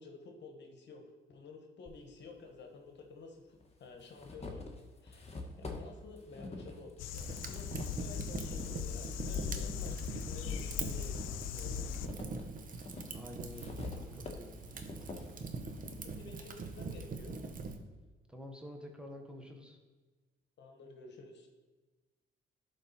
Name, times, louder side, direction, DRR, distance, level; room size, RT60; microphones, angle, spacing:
voice 1, 0.0-4.7 5.0-7.7 8.0-11.9 16.0-17.4 20.6-21.5, left 3 dB, 60° left, 3 dB, 1.2 m, -51 dB
sound 1, 1.9-2.0 3.0-3.1 3.6-8.7 9.3-10.5 10.9-17.0, left 3 dB, 30° left, 1.2 m, -47 dB
sound 2, 7.0-12.1, left 9 dB, 90° left, 0.4 m, -39 dB
Fire, 7.1-17.8, right 4 dB, 45° right, 0.8 m, -43 dB
voice 2, 13.1-14.6 18.3-19.8, left 1 dB, 5° right, 2 dB, 1.1 m, -48 dB
11.0 x 3.9 x 4.2 m, 1.3 s
cardioid pair, 90°, 20 cm